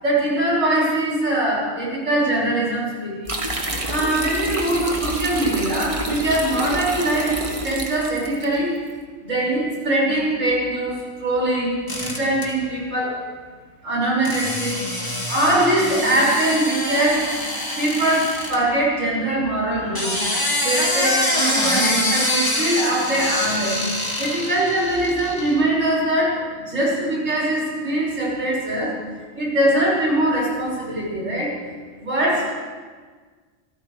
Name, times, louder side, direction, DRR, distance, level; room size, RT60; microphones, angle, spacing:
voice 1, 0.0-3.3 3.9-8.8 9.2-13.1 13.8-14.9 15.3-17.3 17.8-20.2 20.6-23.8 24.2-29.0 29.3-31.5 32.0-32.5, right 1 dB, 80° right, -6 dB, 6.3 m, -22 dB
sound 1, 3.3-8.5, right 1 dB, 25° right, 1.5 m, -27 dB
sound 2, 11.9-12.5 14.2-18.6 19.8-25.6, left 1 dB, 15° left, 2.2 m, -25 dB
26.0 x 14.0 x 3.4 m, 1.5 s
omnidirectional pair, 1.3 m